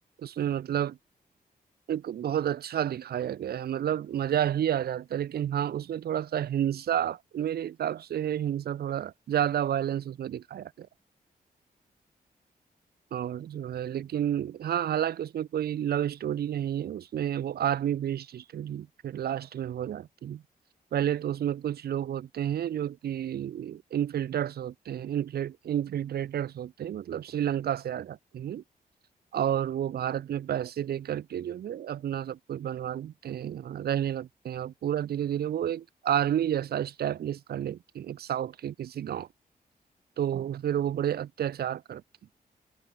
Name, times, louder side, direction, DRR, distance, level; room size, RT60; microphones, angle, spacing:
voice 1, 0.2-1.0 1.9-10.9 13.1-20.4 20.9-28.6 29.3-39.3 40.2-42.0, right 10 dB, 80° right, 0.9 m, -30 dB
wide cardioid pair, 175°, 16 cm